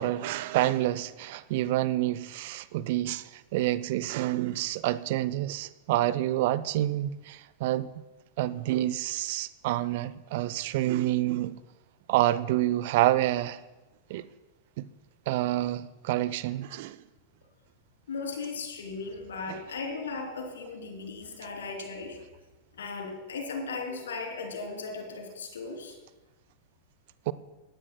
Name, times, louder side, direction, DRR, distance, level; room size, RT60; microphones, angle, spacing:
voice 1, 0.0-7.9 8.4-11.6 12.1-13.6 14.1-14.3 14.8-14.9 15.3-17.0 19.5-19.6 27.3-27.4, right 15 dB, 50° right, 0.5 m, -28 dB
voice 2, 18.1-22.2 22.8-26.0, left 4 dB, 65° left, 3.1 m, -37 dB
19.0 x 16.0 x 2.2 m
figure-of-eight pair, 90°, 0 cm